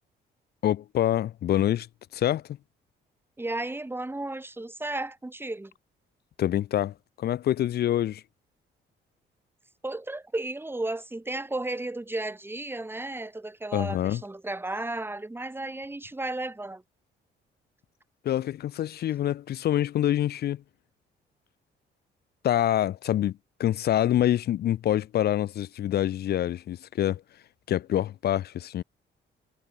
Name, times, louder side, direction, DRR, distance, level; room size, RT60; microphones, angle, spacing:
voice 1, 0.6-1.9 2.1-2.4 6.4-8.2 13.7-14.2 18.2-20.6 22.4-27.2 27.7-28.8, left 12 dB, 55° left, 0.4 m, -26 dB
voice 2, 3.4-5.7 9.8-16.8, right 2 dB, 10° right, 2.2 m, -34 dB
cardioid pair, 90°, 20 cm